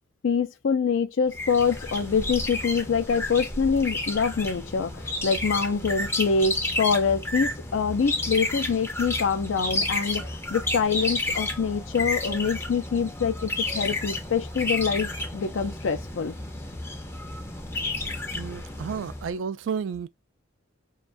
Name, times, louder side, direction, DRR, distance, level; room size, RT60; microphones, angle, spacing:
voice 1, 0.2-10.2 10.5-16.3, left 5 dB, 85° left, 0.5 m, -25 dB
sound 1, 1.3-19.3, left 2 dB, 15° left, 0.4 m, -31 dB
voice 2, 18.3-20.1, right 6 dB, 85° right, 0.3 m, -32 dB
2.3 x 2.3 x 2.4 m
head